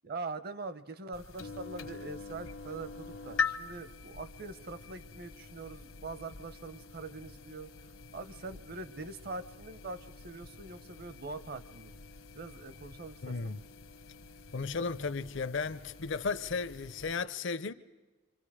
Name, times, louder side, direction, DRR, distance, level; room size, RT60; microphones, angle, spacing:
voice 1, 0.0-7.7 8.1-12.0 12.3-13.6, right 3 dB, 45° right, 0.8 m, -43 dB
sound 1, 1.1-17.2, left 5 dB, 75° left, 1.0 m, -43 dB
voice 2, 13.2-13.6 14.5-17.7, left 4 dB, 60° left, 0.6 m, -34 dB
27.0 x 25.0 x 4.9 m
head